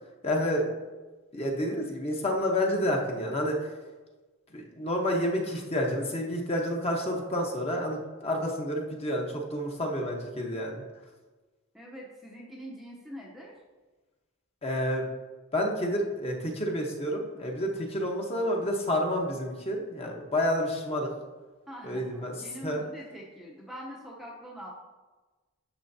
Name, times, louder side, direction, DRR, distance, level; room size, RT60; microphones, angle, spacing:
voice 1, 0.2-0.7 1.3-3.7 4.5-10.8 14.6-15.0 15.5-21.1 21.8-22.3 22.6-22.8, equal, 30° left, 0 dB, 1.1 m, -29 dB
voice 2, 11.7-13.6 21.7-24.7, equal, ahead, -3 dB, 0.8 m, -44 dB
10.0 x 6.9 x 2.8 m, 1.2 s
head